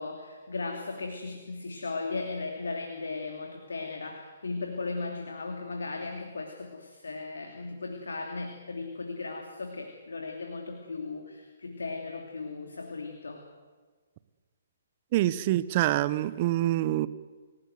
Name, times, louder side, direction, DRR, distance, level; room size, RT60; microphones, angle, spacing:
voice 1, 0.0-13.4, left 3 dB, 80° left, 4 dB, 2.9 m, -37 dB
voice 2, 15.1-17.1, right 15 dB, 40° right, 16 dB, 1.1 m, -26 dB
28.5 x 17.0 x 8.0 m, 1.4 s
figure-of-eight pair, 135°, 0 cm